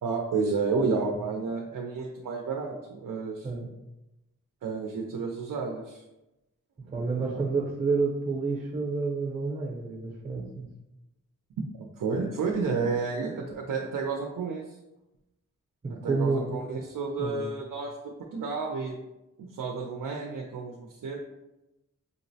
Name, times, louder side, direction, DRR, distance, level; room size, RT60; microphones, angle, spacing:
voice 1, 0.0-3.5 4.6-6.0 6.8-7.4 11.8-14.6 16.0-18.0 18.3-19.0 19.4-21.2, right 4 dB, 85° right, 1 dB, 0.5 m, -31 dB
voice 2, 6.9-10.7 15.8-16.5 17.2-17.5, right 4 dB, 25° right, -2 dB, 0.6 m, -29 dB
5.2 x 2.0 x 2.6 m, 0.95 s
wide cardioid pair, 150°, 32 cm